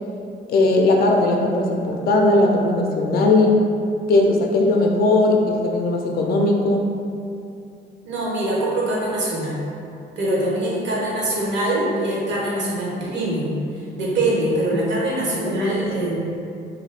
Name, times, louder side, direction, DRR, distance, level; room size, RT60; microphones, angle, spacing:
voice 1, 0.5-3.6 4.1-6.9 14.7-14.8 15.4-16.1, left 2 dB, 50° left, 1 dB, 0.4 m, -18 dB
voice 2, 8.0-9.6 10.2-16.4, right 1 dB, 65° right, -5 dB, 0.8 m, -23 dB
2.5 x 2.4 x 3.2 m, 2.5 s
cardioid pair, 90°, 20 cm